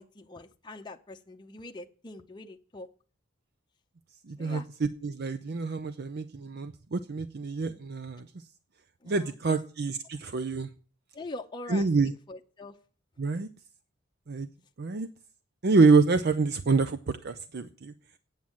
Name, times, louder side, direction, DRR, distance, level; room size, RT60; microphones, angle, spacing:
voice 1, 0.0-2.9 4.4-4.7 9.0-9.6 11.1-11.9 12.3-12.8, left 2 dB, 25° left, 3 dB, 0.7 m, -43 dB
voice 2, 4.3-8.3 9.1-10.7 11.7-12.1 13.2-13.5 14.3-14.5 14.8-15.1 15.6-17.9, right 4 dB, 55° right, 10 dB, 0.5 m, -26 dB
8.9 x 7.2 x 7.6 m, 0.41 s
head